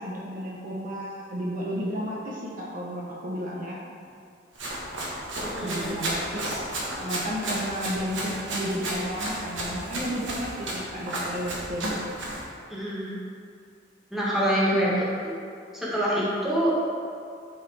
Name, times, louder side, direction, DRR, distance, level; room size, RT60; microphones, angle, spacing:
voice 1, 0.0-3.8 5.6-6.7 6.9-11.9 14.7-15.0, equal, 50° right, -4 dB, 0.8 m, -32 dB
Run, 4.5-12.5, right 1 dB, 85° right, 1.3 m, -33 dB
voice 2, 5.4-5.9 7.3-7.4 12.7-13.2 14.1-14.9 15.2-15.3 15.7-16.7, equal, ahead, -8 dB, 1.6 m, -26 dB
8.3 x 4.7 x 3.3 m, 2.3 s
head